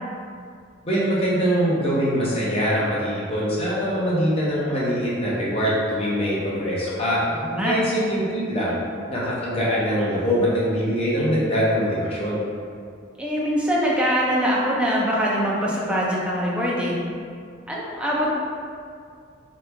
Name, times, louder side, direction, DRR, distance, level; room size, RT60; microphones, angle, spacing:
voice 1, 0.9-7.2 7.6-8.7 9.1-12.4, equal, 30° left, -7 dB, 0.7 m, -23 dB
voice 2, 7.4-7.7 13.2-17.0 17.7-18.3, equal, 5° right, -5 dB, 0.4 m, -23 dB
3.0 x 2.3 x 3.3 m, 2.3 s
head